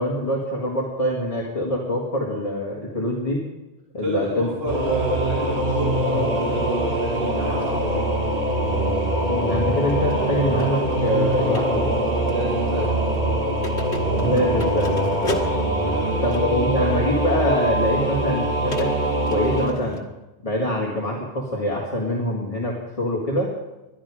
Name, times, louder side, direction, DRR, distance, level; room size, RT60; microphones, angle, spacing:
voice 1, 0.0-3.4 3.9-4.5 9.3-11.9 14.1-15.5 16.2-18.9 19.3-20.0 20.4-23.5, left 1 dB, 30° left, -2 dB, 2.1 m, -24 dB
voice 2, 4.0-8.1 12.2-13.1 15.8-16.3, right 1 dB, 60° right, -3 dB, 2.1 m, -30 dB
Singing / Musical instrument, 4.7-19.7, right 1 dB, 45° right, 2.1 m, -23 dB
sound 1, 9.4-16.7 17.5-17.6 18.7-20.0, left 2 dB, 85° left, 1.8 m, -36 dB
21.0 x 12.0 x 4.9 m, 1.0 s
omnidirectional pair, 1.1 m